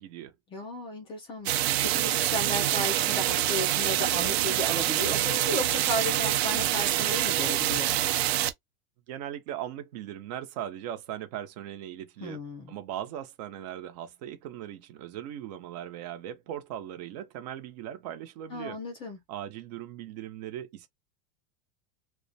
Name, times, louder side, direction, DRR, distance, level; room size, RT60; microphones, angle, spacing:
voice 1, 0.0-0.3 9.1-12.4 12.7-18.8 19.3-20.9, right 11 dB, 45° right, 0.6 m, -39 dB
voice 2, 0.5-7.9 12.2-12.7 18.5-19.2, left 1 dB, 15° left, 0.5 m, -34 dB
sound 1, 1.5-8.5, right 13 dB, 90° right, 0.6 m, -26 dB
2.3 x 2.0 x 2.6 m
supercardioid pair, 175°, 31 cm